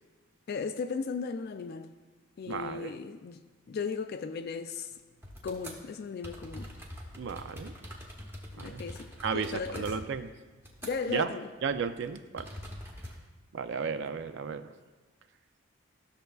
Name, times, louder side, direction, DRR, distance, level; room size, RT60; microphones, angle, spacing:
voice 1, 0.5-1.9 2.4-4.9 5.4-6.7 8.6-9.1 9.3-9.9 10.8-11.5, left 5 dB, 50° left, 0.3 m, -36 dB
voice 2, 2.5-2.9 7.2-7.7 8.5-8.8 9.2-10.3 11.1-11.3 11.6-12.5 13.5-14.7, right 6 dB, 55° right, 0.4 m, -33 dB
sound 1, 5.2-5.8 6.2-11.2 11.5-11.7 12.4-13.2, equal, 10° right, 0.9 m, -44 dB
13.0 x 6.5 x 2.3 m
head